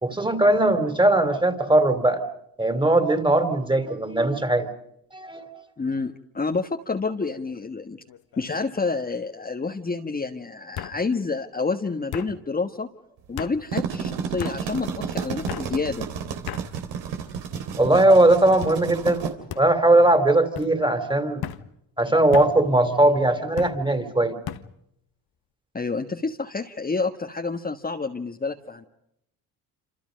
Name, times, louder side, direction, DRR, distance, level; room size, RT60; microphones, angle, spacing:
voice 1, 0.0-2.2 2.6-4.7 5.1-5.5 17.8-21.5 22.0-24.4, right 1 dB, 10° right, 10 dB, 3.3 m, -19 dB
voice 2, 5.8-8.0 8.4-12.9 13.3-16.1 25.7-28.9, left 4 dB, 20° left, 3 dB, 1.5 m, -28 dB
sound 1, 7.3-7.7 8.1-8.6 9.7-9.8 10.8-11.0 12.1-12.3 13.4-13.6 14.4-14.6 15.5-15.7 16.5-16.7 17.4-17.8 18.6-18.8 19.5-19.7 20.5-20.7 21.4-21.6 22.3-22.5 23.6-23.8 24.5-24.7, left 10 dB, 55° left, 1.5 m, -35 dB
sound 2, 13.5-19.3, right 6 dB, 75° right, 3.4 m, -32 dB
27.5 x 27.0 x 5.3 m, 0.77 s
supercardioid pair, 75°, 43 cm